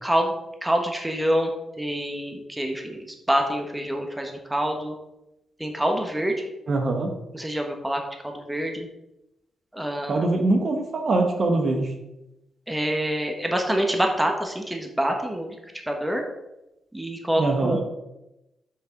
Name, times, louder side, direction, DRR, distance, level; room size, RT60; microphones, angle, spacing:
voice 1, 0.0-0.4 0.6-1.5 1.8-4.9 5.6-6.5 7.3-8.9 9.7-10.3 12.7-16.2 16.9-17.8, equal, 10° right, 3 dB, 1.4 m, -26 dB
voice 2, 6.7-7.1 10.1-11.9 17.4-17.8, right 2 dB, 55° right, 3 dB, 1.4 m, -23 dB
7.9 x 6.0 x 3.9 m, 0.91 s
cardioid pair, 75°, 0 cm